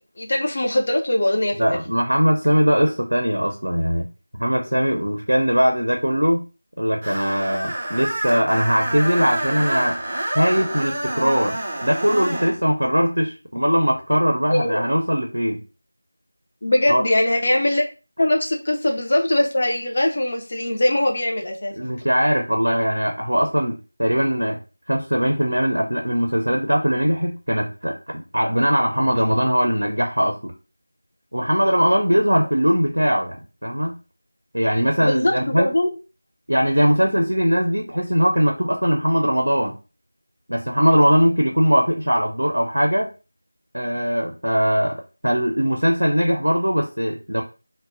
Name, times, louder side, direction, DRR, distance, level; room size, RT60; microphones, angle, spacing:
voice 1, 0.2-1.8 14.5-14.8 16.6-17.9 18.2-21.8 35.0-36.0, left 1 dB, 40° left, 1 dB, 0.4 m, -21 dB
voice 2, 1.6-6.5 6.8-10.0 10.3-15.6 16.9-17.0 21.8-24.6 24.9-30.5 31.3-34.0 34.5-35.7 36.5-39.7 40.5-43.1 43.7-47.4, equal, 80° right, 2 dB, 0.5 m, -20 dB
Screech, 7.0-12.6, right 1 dB, 20° right, 0.4 m, -28 dB
2.1 x 2.0 x 3.5 m, 0.32 s
figure-of-eight pair, 170°, 0 cm